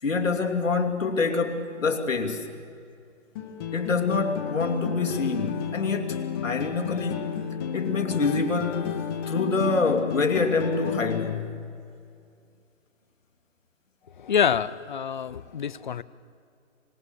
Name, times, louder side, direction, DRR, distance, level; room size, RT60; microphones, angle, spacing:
voice 1, 0.0-2.5 3.7-11.6, left 4 dB, 90° left, 2.7 m, -26 dB
sound 1, 3.3-11.3, left 7 dB, 20° left, 1.1 m, -32 dB
voice 2, 14.2-16.0, left 7 dB, 40° left, 0.5 m, -26 dB
25.5 x 19.5 x 7.0 m
hypercardioid pair, 155°, 38 cm